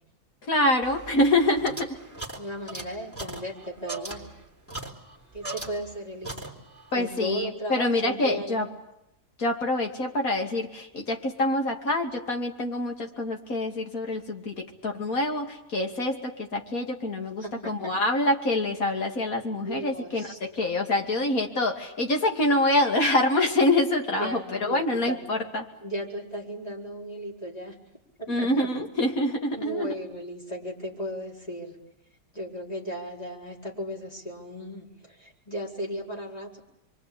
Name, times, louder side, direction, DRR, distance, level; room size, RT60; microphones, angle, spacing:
voice 1, 0.4-2.0 6.9-8.7 9.4-25.7 28.3-30.0, left 1 dB, 60° left, 3 dB, 3.0 m, -26 dB
sound 1, 0.8-6.0 6.2-6.9, right 2 dB, 10° left, 3.6 m, -39 dB
voice 2, 2.4-4.4 5.3-6.6 6.9-8.7 17.4-17.9 19.6-20.4 24.1-25.2 25.8-27.8 28.2-28.7 29.5-31.8 32.3-36.6, equal, 25° left, -2 dB, 4.5 m, -36 dB
27.5 x 24.0 x 8.6 m, 0.87 s
omnidirectional pair, 1.7 m